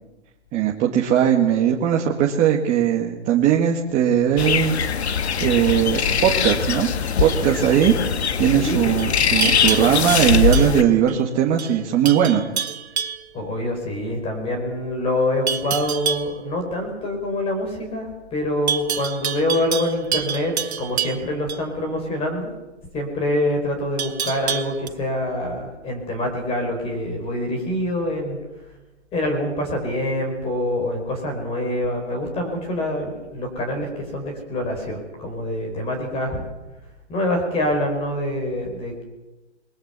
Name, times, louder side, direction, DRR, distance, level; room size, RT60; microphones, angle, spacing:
voice 1, 0.5-4.8 5.4-6.9 7.2-7.9 8.4-12.5, right 9 dB, 20° right, 0 dB, 1.6 m, -19 dB
sound 1, 4.4-10.8, left 6 dB, 70° left, 1.7 m, -22 dB
voice 2, 8.6-8.9 13.3-22.5 22.9-28.4 29.1-36.4 37.1-39.0, left 1 dB, 15° left, 3 dB, 4.7 m, -25 dB
Livestock farm animals working animals, 9.0-11.2 11.6-11.8 12.0-13.3 15.5-16.3 18.7-21.6 24.0-24.9, right 8 dB, 65° right, 1.6 m, -28 dB
21.0 x 20.0 x 8.1 m, 1.1 s
hypercardioid pair, 150°, 35 cm